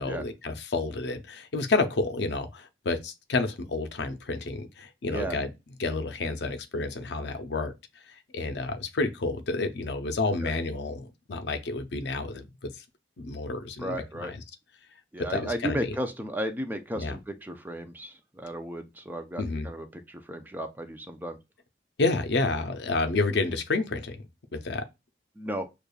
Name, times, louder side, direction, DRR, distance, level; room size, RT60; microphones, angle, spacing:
voice 1, 0.0-5.5 5.8-7.7 8.3-12.7 13.2-14.3 15.3-15.9 16.9-17.2 19.4-19.7 22.0-24.2 24.6-24.8, left 3 dB, 70° left, 0.6 m, -30 dB
voice 2, 5.1-5.4 10.4-10.5 13.8-14.3 15.1-21.4 25.4-25.7, equal, 10° right, 0.4 m, -34 dB
6.5 x 2.4 x 2.3 m
head